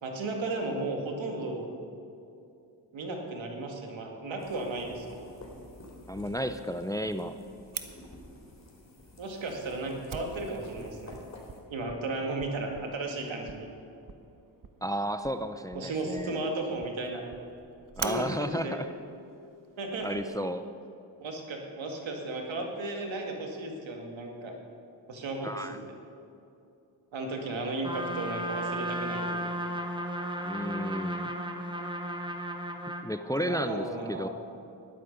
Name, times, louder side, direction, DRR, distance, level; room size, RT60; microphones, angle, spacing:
voice 1, 0.0-1.7 2.9-5.3 9.2-11.2 11.7-13.7 15.7-17.2 18.0-18.8 19.8-20.2 21.2-24.5 25.1-25.8 27.1-29.3 33.4-34.3, right 2 dB, 70° right, 2 dB, 2.2 m, -34 dB
sound 1, 4.4-11.6, left 1 dB, 35° left, 3.6 m, -50 dB
voice 2, 6.1-7.3 14.8-16.4 18.0-18.9 20.0-20.6 25.4-25.8 30.4-31.3 33.0-34.3, equal, 5° left, 10 dB, 0.6 m, -32 dB
Fire, 7.7-20.2, right 6 dB, 45° right, 1.1 m, -46 dB
Trumpet, 27.8-33.1, right 1 dB, 10° right, 1.5 m, -34 dB
14.0 x 11.5 x 5.3 m, 2.7 s
supercardioid pair, 50°, 47 cm